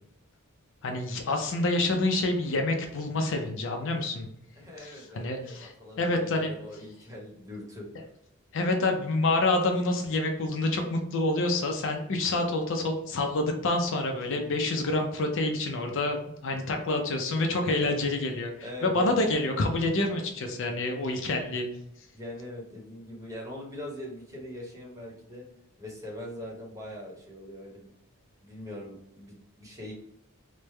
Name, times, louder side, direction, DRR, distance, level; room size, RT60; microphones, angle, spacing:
voice 1, 0.8-4.3 4.8-5.7 6.0-6.5 8.5-21.7, left 2 dB, 60° left, 4 dB, 0.5 m, -27 dB
voice 2, 4.6-7.9 17.7-18.1 18.6-19.1 22.1-25.4 25.8-27.9 28.4-29.9, equal, 15° right, -3 dB, 0.9 m, -41 dB
3.2 x 2.1 x 3.2 m, 0.77 s
head